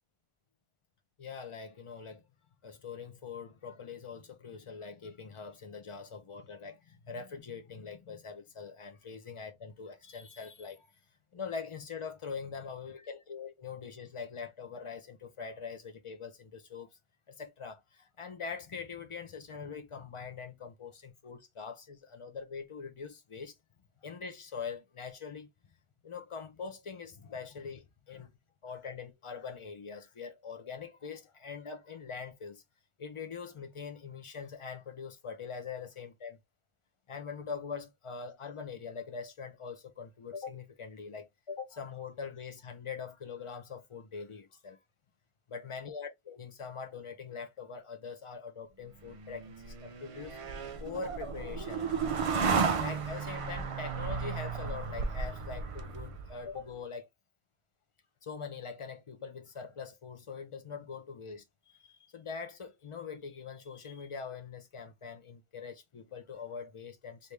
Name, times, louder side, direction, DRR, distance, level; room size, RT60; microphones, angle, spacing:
voice 1, 1.2-2.2 2.6-10.9 11.3-16.9 17.3-23.5 24.0-25.5 26.0-28.3 28.6-32.6 33.0-36.4 37.1-44.8 45.5-51.9 52.4-57.1 58.2-67.3, left 5 dB, 40° left, 0.5 m, -43 dB
sound 1, 49.1-56.5, right 5 dB, 55° right, 0.3 m, -34 dB
3.3 x 2.7 x 3.1 m
omnidirectional pair, 1.1 m